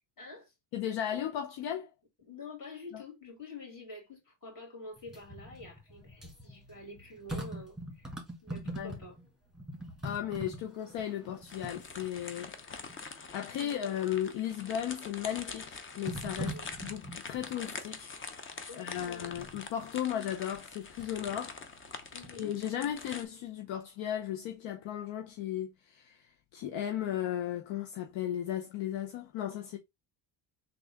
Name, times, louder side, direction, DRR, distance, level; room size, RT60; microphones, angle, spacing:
voice 1, 0.2-0.5 2.2-8.1 8.4-9.2 13.4-13.8 16.3-16.7 18.7-19.3 22.1-22.6, left 2 dB, 40° left, 2.5 m, -48 dB
voice 2, 0.7-1.9 2.9-3.0 8.8-8.9 10.0-12.5 13.3-16.5 16.8-18.1 18.8-21.6 22.4-26.3 26.5-29.8, left 10 dB, 70° left, 0.7 m, -35 dB
sound 1, 5.0-9.3 9.5-12.3 12.9-13.0 14.6-15.1 16.0-17.6 19.2-19.6 20.5-21.2 21.6-22.6 22.9-23.0, equal, ahead, 1.6 m, -43 dB
sound 2, 11.5-23.2, left 4 dB, 25° left, 0.6 m, -45 dB
3.6 x 2.4 x 3.4 m
supercardioid pair, 90°, 48 cm